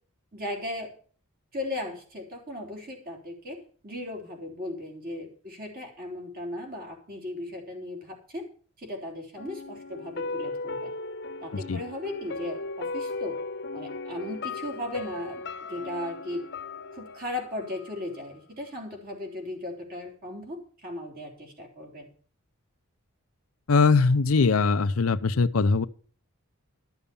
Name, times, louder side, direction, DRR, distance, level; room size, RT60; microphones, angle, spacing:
voice 1, 0.3-0.9 1.5-8.5 8.8-10.9 11.4-13.4 13.7-16.4 16.9-22.1, left 1 dB, 40° right, 3.8 m, -37 dB
sound 1, 9.4-18.4 18.7-18.8, left 3 dB, 50° left, 1.0 m, -37 dB
voice 2, 23.7-25.9, left 4 dB, 70° left, 0.6 m, -21 dB
13.0 x 6.9 x 7.1 m
head